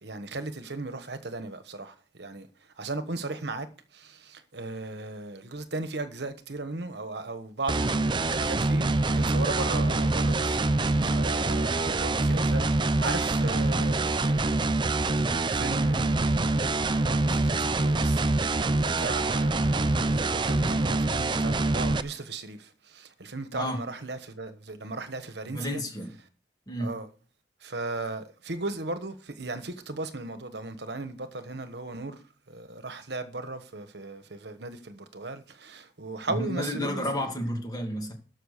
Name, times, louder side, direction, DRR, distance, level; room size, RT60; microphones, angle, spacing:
voice 1, 0.0-3.7 3.9-10.6 11.0-14.7 15.5-25.8 26.8-27.1 27.6-32.2 32.5-37.3, right 2 dB, 65° right, 1.3 m, -37 dB
sound 1, 7.7-22.0, right 2 dB, 25° right, 0.5 m, -25 dB
voice 2, 25.5-26.1 26.7-26.9 36.3-38.1, equal, 20° left, 2.4 m, -31 dB
12.5 x 6.3 x 6.6 m
head